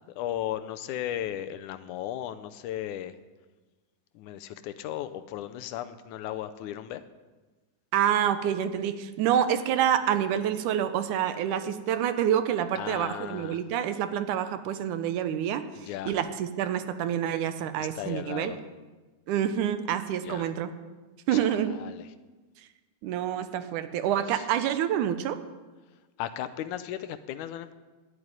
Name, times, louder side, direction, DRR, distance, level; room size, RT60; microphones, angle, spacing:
voice 1, 0.2-3.2 4.2-7.0 12.8-13.6 15.8-16.2 17.8-18.6 20.2-20.5 21.3-21.5 21.7-22.1 24.3-24.4 26.2-27.7, left 12 dB, 80° left, 11 dB, 2.0 m, -36 dB
voice 2, 7.9-15.6 16.1-18.5 19.3-20.7 21.3-21.7 23.0-25.4, right 10 dB, 80° right, 10 dB, 2.2 m, -27 dB
12.0 x 7.9 x 9.8 m, 1.2 s
omnidirectional pair, 3.7 m